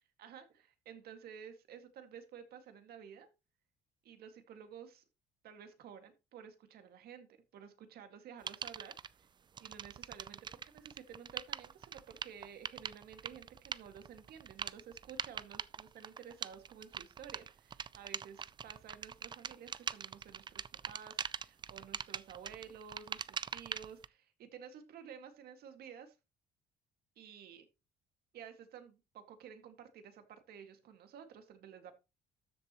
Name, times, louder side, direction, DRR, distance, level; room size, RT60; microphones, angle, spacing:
voice 1, 0.2-3.3 4.0-5.1 5.4-7.3 7.5-8.9 9.6-26.2 27.2-27.7 28.3-31.9, right 8 dB, 65° right, 8 dB, 2.0 m, -52 dB
sound 1, 8.5-9.1 9.5-24.1, right 7 dB, 25° right, 0.4 m, -43 dB
13.0 x 7.2 x 3.0 m, 0.27 s
cardioid pair, 110°, 17 cm